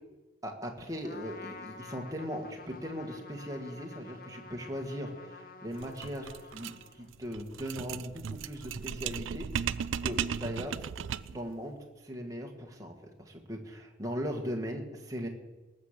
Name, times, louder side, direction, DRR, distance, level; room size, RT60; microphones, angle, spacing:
voice 1, 0.4-10.8 11.3-15.3, equal, 20° right, 1 dB, 1.7 m, -39 dB
Trumpet, 1.0-7.2, left 4 dB, 50° left, 1.0 m, -49 dB
sound 1, 5.7-11.5, right 7 dB, 85° right, 0.4 m, -36 dB
19.5 x 6.7 x 7.5 m, 1.2 s
head